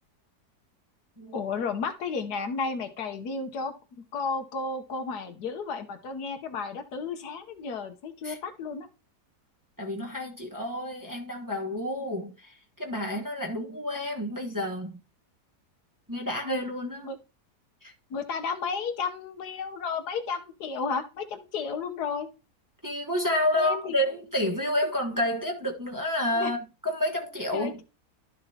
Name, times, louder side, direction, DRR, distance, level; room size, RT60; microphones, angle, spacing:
voice 1, 1.3-3.7 4.1-8.9 17.0-17.2 18.1-22.3 23.5-24.0 26.3-26.5 27.5-27.8, left 5 dB, 75° left, 1.5 m, -33 dB
voice 2, 9.8-12.5 12.8-15.0 16.1-17.1 17.8-17.9 22.8-27.8, left 1 dB, 15° right, 1.1 m, -29 dB
12.5 x 6.7 x 2.8 m
omnidirectional pair, 1.7 m